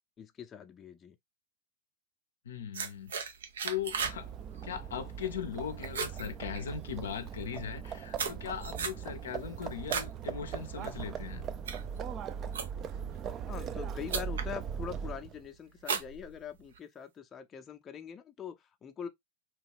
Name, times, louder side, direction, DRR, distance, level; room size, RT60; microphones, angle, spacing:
voice 1, 0.2-1.2 13.5-19.1, left 8 dB, 25° left, 0.5 m, -43 dB
voice 2, 2.4-3.1 3.6-4.3 4.6-11.5, left 8 dB, 80° left, 0.5 m, -39 dB
sound 1, 2.7-4.2 4.5-4.9 5.3-5.6 5.8-7.0 7.6-10.2 10.6-10.9 11.4-13.0 13.7-13.8 14.1-14.5 15.0-15.4 15.8-16.8, right 6 dB, 80° right, 0.6 m, -36 dB
Livestock farm animals working animals, 3.8-15.4, right 7 dB, 35° right, 0.4 m, -40 dB
3.0 x 2.3 x 3.3 m
hypercardioid pair, 100°, 0 cm